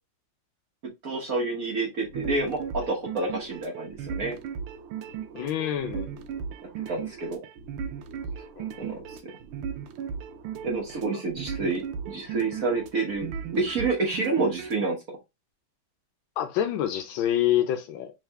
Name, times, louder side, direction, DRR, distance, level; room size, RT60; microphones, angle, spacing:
voice 1, 1.0-4.4 6.9-7.4 8.8-9.3 10.6-15.2, right 3 dB, 50° right, 1.2 m, -29 dB
sound 1, 2.0-14.9, right 7 dB, 85° right, 1.5 m, -37 dB
voice 2, 5.3-6.2 8.6-8.7 16.4-18.1, left 11 dB, 75° left, 1.3 m, -27 dB
3.7 x 3.3 x 3.3 m
omnidirectional pair, 2.4 m